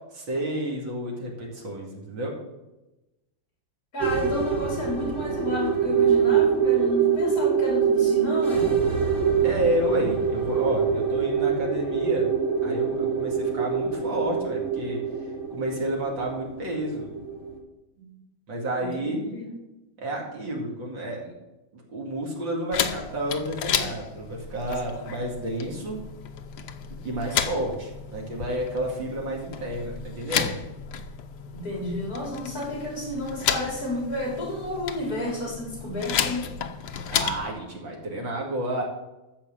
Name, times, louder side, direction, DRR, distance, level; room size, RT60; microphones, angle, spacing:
voice 1, 0.1-2.4 9.1-12.3 12.6-17.1 18.5-19.2 20.0-21.3 21.7-26.0 26.9-30.6 37.1-38.8, right 1 dB, 70° right, -1 dB, 3.3 m, -30 dB
voice 2, 3.9-8.7 18.0-18.1 18.8-19.4 31.5-36.5, left 1 dB, 45° left, -2 dB, 4.3 m, -31 dB
sound 1, 4.0-17.6, right 6 dB, 55° right, 3.2 m, -24 dB
sound 2, 22.7-37.5, left 8 dB, 65° left, 1.3 m, -32 dB
13.5 x 4.9 x 7.6 m, 1.0 s
omnidirectional pair, 2.1 m